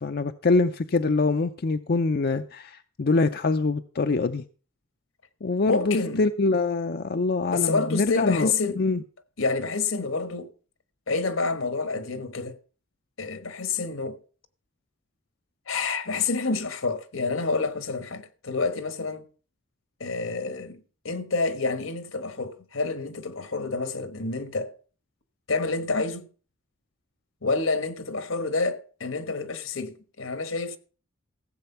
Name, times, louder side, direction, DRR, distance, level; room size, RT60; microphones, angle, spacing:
voice 1, 0.0-4.4 5.4-9.0, left 3 dB, 50° left, 0.5 m, -24 dB
voice 2, 5.6-6.2 7.5-8.8 9.4-10.5 11.1-12.5 13.2-14.2 15.7-19.2 20.0-24.7 25.5-26.3 27.4-30.8, left 3 dB, 80° left, 1.4 m, -28 dB
15.0 x 7.9 x 5.6 m
head